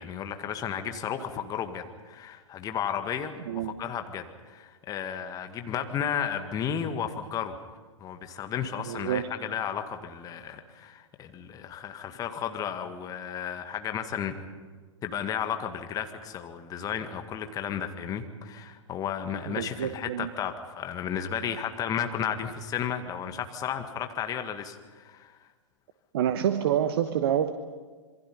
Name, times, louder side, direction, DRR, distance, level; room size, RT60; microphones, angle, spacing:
voice 1, 0.0-7.6 8.0-14.3 15.0-25.4, left 8 dB, 20° left, 6 dB, 1.9 m, -33 dB
voice 2, 8.9-9.3 19.5-20.3 26.1-27.5, right 10 dB, 50° right, 10 dB, 1.1 m, -27 dB
27.0 x 23.0 x 5.5 m, 1.5 s
figure-of-eight pair, 105°, 16 cm